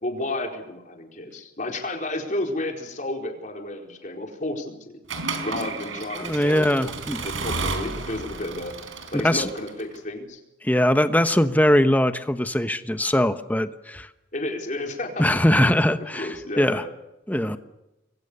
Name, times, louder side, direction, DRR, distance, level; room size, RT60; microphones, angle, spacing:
voice 1, 0.0-4.9 5.4-8.7 9.1-10.4 14.3-15.2 16.0-16.9, left 1 dB, 40° left, 2 dB, 4.4 m, -32 dB
Accelerating revving vroom / Mechanisms, 5.1-10.0, right 4 dB, 85° right, 4.3 m, -32 dB
voice 2, 6.2-7.3 9.2-9.5 10.6-14.1 15.2-16.8 17.3-17.6, left 1 dB, 10° left, 9 dB, 1.1 m, -21 dB
27.0 x 23.0 x 6.8 m, 0.99 s
head